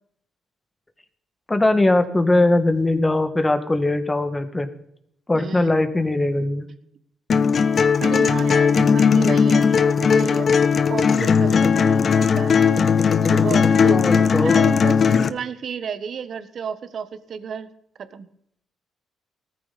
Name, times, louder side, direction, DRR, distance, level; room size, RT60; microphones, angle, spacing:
voice 1, 1.5-4.7 5.3-6.7 13.9-14.6, left 2 dB, 15° left, 8 dB, 2.0 m, -20 dB
voice 2, 5.3-5.7 8.0-10.5 10.9-13.0 13.3-15.0 15.3-17.7 18.0-18.3, right 7 dB, 55° right, 11 dB, 1.4 m, -32 dB
sound 1, 7.3-15.3, left 6 dB, 45° left, 0.9 m, -17 dB
18.0 x 14.0 x 4.3 m, 0.71 s
cardioid pair, 90°, 0 cm